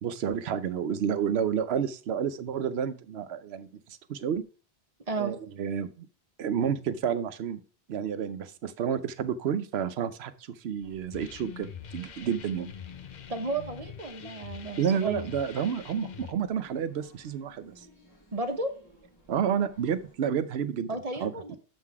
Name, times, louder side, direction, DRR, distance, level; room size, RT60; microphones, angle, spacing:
voice 1, 0.0-4.4 5.2-6.1 6.4-7.6 7.9-10.3 10.6-12.7 14.8-17.8 19.3-21.6, right 8 dB, 75° right, 12 dB, 0.9 m, -30 dB
sound 1, 10.8-20.2, equal, 20° left, 3.1 m, -58 dB
sound 2, 11.1-16.3, left 7 dB, 50° left, 0.7 m, -44 dB
voice 2, 13.3-15.3 18.3-18.7 20.9-21.6, right 3 dB, 35° right, 6 dB, 1.1 m, -33 dB
7.3 x 5.8 x 4.7 m, 0.37 s
omnidirectional pair, 1.1 m